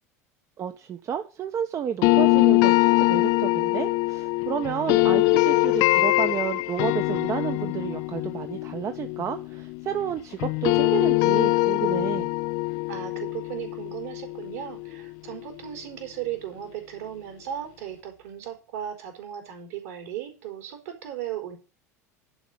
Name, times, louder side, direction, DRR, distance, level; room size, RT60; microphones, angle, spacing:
voice 1, 0.6-12.3, right 8 dB, 35° right, 1.1 m, -31 dB
sound 1, 2.0-10.1 10.4-15.4, left 24 dB, 50° left, 0.5 m, -23 dB
voice 2, 12.9-21.6, right 11 dB, 65° right, 4.3 m, -36 dB
11.0 x 5.1 x 8.4 m
figure-of-eight pair, 80°, 9 cm